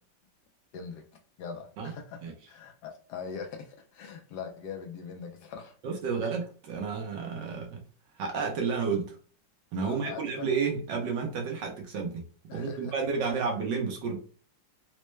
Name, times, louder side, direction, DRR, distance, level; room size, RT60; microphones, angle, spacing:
voice 1, 0.7-1.0 1.4-2.2 2.5-5.7 6.2-6.3 9.8-10.5 12.5-12.9, left 6 dB, 70° left, 1.1 m, -41 dB
voice 2, 5.8-7.8 8.2-9.2 9.7-12.2 12.5-14.2, right 5 dB, 75° right, 1.4 m, -31 dB
4.2 x 2.1 x 3.1 m
omnidirectional pair, 2.0 m